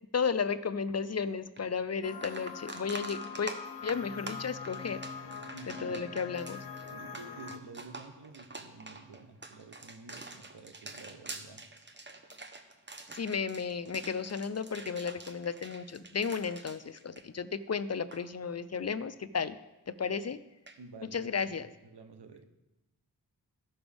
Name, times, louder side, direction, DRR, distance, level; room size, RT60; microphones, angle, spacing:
voice 1, 0.1-3.5 3.8-5.0 5.7-6.7 13.1-19.6 19.9-20.4 21.1-21.7, left 6 dB, 40° left, 14 dB, 0.5 m, -33 dB
sound 1, 1.6-1.7 2.0-17.7 17.9-18.2 20.7-20.8, right 3 dB, 30° right, 1.1 m, -46 dB
sound 2, 2.0-7.6, left 6 dB, 70° left, 0.9 m, -43 dB
voice 2, 5.5-6.1 6.9-11.7 20.8-22.4, right 3 dB, 80° right, 7 dB, 1.0 m, -50 dB
14.5 x 6.1 x 3.5 m, 1.0 s
cardioid pair, 50°, 39 cm